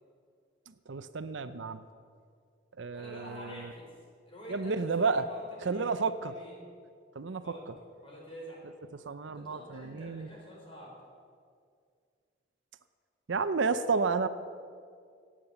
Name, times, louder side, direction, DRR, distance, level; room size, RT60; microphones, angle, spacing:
voice 1, 0.9-1.8 2.8-3.7 4.5-5.2 5.7-6.3 7.2-7.4 9.1-10.3 13.3-14.3, right 4 dB, 75° right, 12 dB, 0.6 m, -31 dB
voice 2, 2.9-3.9 4.2-5.9 6.2-6.6 7.4-7.7 8.0-8.6 9.3-11.0, equal, 30° left, -3 dB, 4.5 m, -47 dB
17.0 x 8.9 x 6.9 m, 2.2 s
head